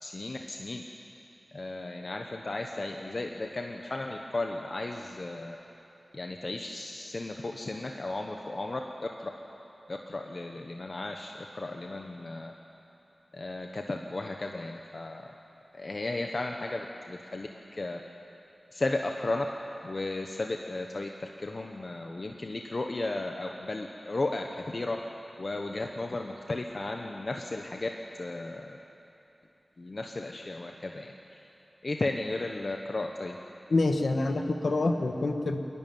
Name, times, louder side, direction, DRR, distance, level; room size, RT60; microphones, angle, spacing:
voice 1, 0.0-0.8 1.5-5.6 6.1-8.8 9.2-9.3 9.9-12.5 13.3-15.2 15.7-18.0 18.7-19.5 19.8-21.1 21.4-25.0 25.4-27.9 28.2-28.8 29.8-31.1 31.8-33.3, left 2 dB, 45° left, 2 dB, 1.1 m, -34 dB
voice 2, 33.7-35.6, left 2 dB, 65° left, 5 dB, 1.6 m, -26 dB
28.5 x 11.5 x 9.4 m, 3.0 s
wide cardioid pair, 90°, 0 cm